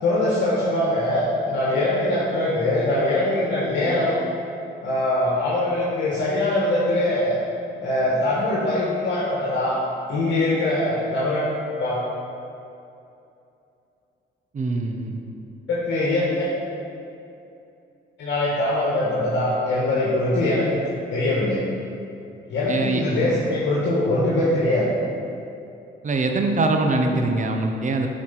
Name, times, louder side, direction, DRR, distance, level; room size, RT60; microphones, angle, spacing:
voice 1, 0.0-4.2 4.8-7.4 7.8-9.8 10.1-12.0 15.7-16.5 18.2-20.8 21.1-21.6 22.5-24.9, left 1 dB, 65° left, -6 dB, 1.5 m, -22 dB
voice 2, 14.5-15.2 22.7-23.0 26.0-28.1, right 2 dB, 40° right, 3 dB, 0.8 m, -23 dB
7.5 x 4.2 x 5.8 m, 2.7 s
cardioid pair, 90°, 20 cm